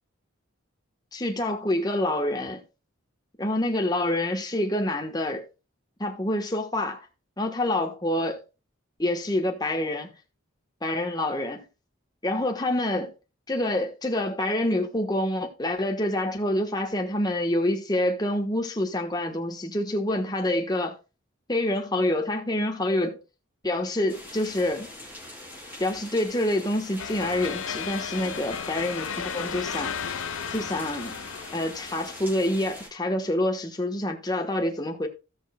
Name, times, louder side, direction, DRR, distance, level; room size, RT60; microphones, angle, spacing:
voice 1, 1.1-2.6 3.4-5.4 6.0-7.1 7.4-8.4 9.0-10.1 10.8-11.6 12.2-13.1 13.5-21.0 21.5-23.2 23.6-24.9 25.8-30.0 30.5-31.2 31.5-35.1, left 1 dB, 20° left, 1.3 m, -27 dB
sound 1, 24.1-32.9, left 1 dB, 10° right, 3.4 m, -43 dB
sound 2, 27.0-32.5, left 7 dB, 75° left, 0.7 m, -34 dB
16.0 x 6.3 x 2.3 m
head